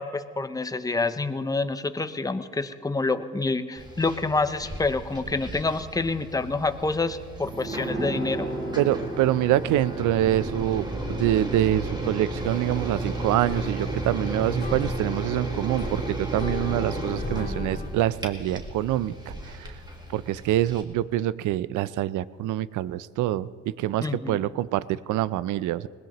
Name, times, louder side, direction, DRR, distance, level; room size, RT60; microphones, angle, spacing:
voice 1, 0.0-8.5 24.0-24.4, left 3 dB, 10° left, 11 dB, 0.7 m, -27 dB
heater start, 3.8-20.8, right 1 dB, 15° right, 2.0 m, -34 dB
sound 1, 7.5-16.8 17.0-17.1, right 1 dB, 35° right, 4.7 m, -37 dB
voice 2, 8.7-19.8 20.1-23.5 23.8-25.9, right 13 dB, 80° right, 19 dB, 0.5 m, -26 dB
sound 2, 12.4-17.9, left 2 dB, 30° left, 2.0 m, -38 dB
20.5 x 19.0 x 3.0 m, 2.3 s
cardioid pair, 90°, 30 cm